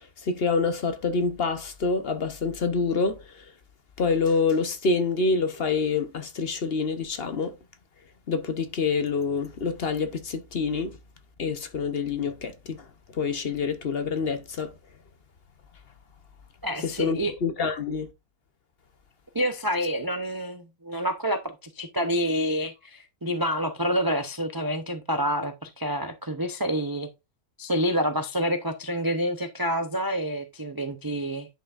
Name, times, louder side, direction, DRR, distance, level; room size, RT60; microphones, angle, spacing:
voice 1, 0.0-3.4 4.0-7.5 8.3-10.9 11.4-12.8 13.1-14.7 16.8-18.1, left 4 dB, 50° left, 1.0 m, -27 dB
voice 2, 16.6-17.3 19.3-27.1 27.6-31.5, equal, 30° right, 0.4 m, -28 dB
10.0 x 5.6 x 2.5 m
omnidirectional pair, 1.5 m